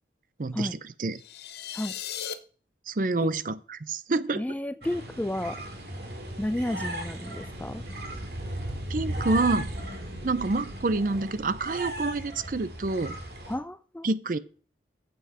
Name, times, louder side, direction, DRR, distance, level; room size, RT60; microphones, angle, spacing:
voice 1, 0.4-1.2 2.9-4.4 8.9-9.7 10.2-13.2 14.0-14.4, right 3 dB, 50° right, 0.5 m, -27 dB
sound 1, 1.1-2.3, left 9 dB, 65° left, 0.8 m, -36 dB
voice 2, 4.3-5.6 6.4-7.8 13.5-14.1, left 1 dB, 10° left, 0.3 m, -32 dB
sound 2, 4.8-13.6, right 1 dB, 65° right, 2.4 m, -36 dB
8.0 x 7.8 x 4.9 m
head